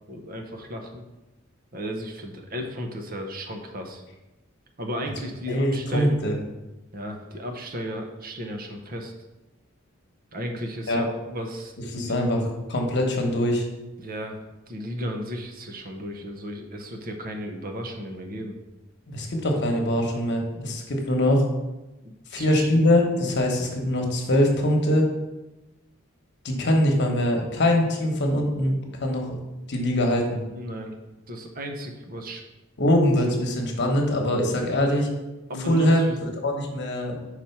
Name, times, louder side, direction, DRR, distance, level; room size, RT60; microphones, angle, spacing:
voice 1, 0.1-1.0 1.7-4.0 4.8-6.2 6.9-9.1 10.3-12.2 14.0-18.6 22.0-22.8 30.6-31.0 31.3-32.4 35.5-36.3, equal, 45° right, 4 dB, 0.8 m, -34 dB
voice 2, 5.5-6.3 10.9-11.0 11.9-13.7 19.1-21.4 22.3-25.1 26.4-29.4 29.7-30.4 32.8-35.1 35.7-36.1 36.4-37.2, left 1 dB, 55° left, 1 dB, 1.2 m, -23 dB
4.9 x 4.4 x 5.8 m, 1.0 s
head